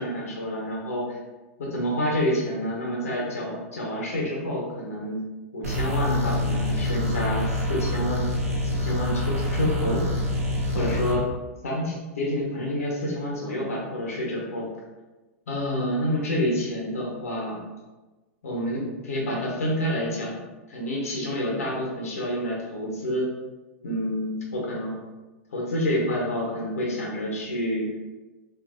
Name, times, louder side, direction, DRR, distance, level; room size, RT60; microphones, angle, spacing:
voice 1, 0.0-1.0 1.6-5.2 5.5-8.3 8.6-10.0 10.7-11.3 11.6-14.7 15.5-17.6 18.4-20.4 20.7-23.3 23.8-25.0 25.5-27.9, equal, 75° left, -3 dB, 1.1 m, -28 dB
sound 1, 5.6-11.2, left 1 dB, 90° right, 0.7 m, -26 dB
3.0 x 2.6 x 2.5 m, 1.2 s
hypercardioid pair, 105°, 8 cm